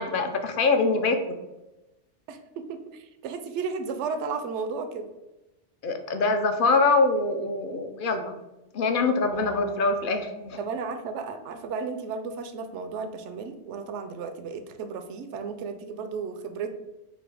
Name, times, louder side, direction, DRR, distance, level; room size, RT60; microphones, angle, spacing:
voice 1, 0.0-1.4 5.8-8.4 8.7-10.6, left 3 dB, 60° left, 6 dB, 0.6 m, -24 dB
voice 2, 2.3-5.1 10.6-16.7, right 5 dB, 80° right, 8 dB, 0.9 m, -34 dB
sound 1, 9.3-10.8, equal, 35° right, 0.4 m, -46 dB
4.1 x 2.8 x 4.5 m, 1.0 s
omnidirectional pair, 1.2 m